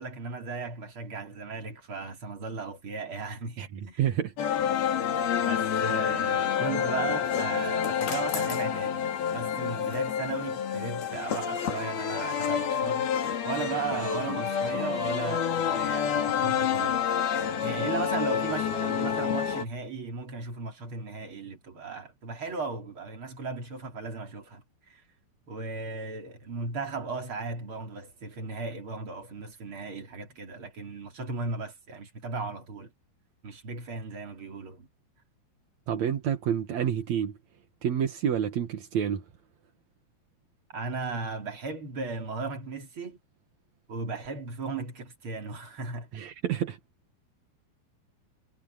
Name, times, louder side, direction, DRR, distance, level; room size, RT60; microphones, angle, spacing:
voice 1, 0.0-4.0 5.4-9.0 9.3-13.1 13.4-17.0 17.6-25.0 25.5-32.9 33.4-34.9 40.7-43.2 43.9-46.1, right 4 dB, 30° right, 3.5 m, -36 dB
voice 2, 4.0-4.3 4.6-4.8 35.9-37.4 37.8-39.2 46.1-46.8, right 9 dB, 60° right, 1.9 m, -28 dB
sound 1, 4.4-19.6, left 8 dB, 60° left, 4.6 m, -28 dB
omnidirectional pair, 5.2 m